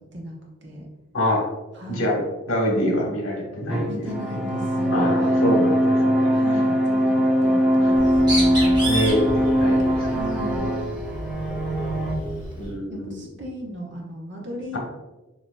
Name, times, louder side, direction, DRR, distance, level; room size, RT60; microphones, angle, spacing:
voice 1, 1.9-2.2 2.5-4.0 4.9-6.3 8.8-10.2 12.6-13.1 14.7-14.8, equal, 75° left, -1 dB, 1.3 m, -25 dB
sound 1, 3.7-12.1, equal, 5° right, 0.5 m, -21 dB
voice 2, 3.8-5.9 6.3-8.8 10.0-10.6 12.9-14.8, right 1 dB, 55° right, -1 dB, 1.0 m, -35 dB
Bird, 7.9-12.7, right 1 dB, 20° right, 1.1 m, -31 dB
7.1 x 2.9 x 2.3 m, 1.1 s
head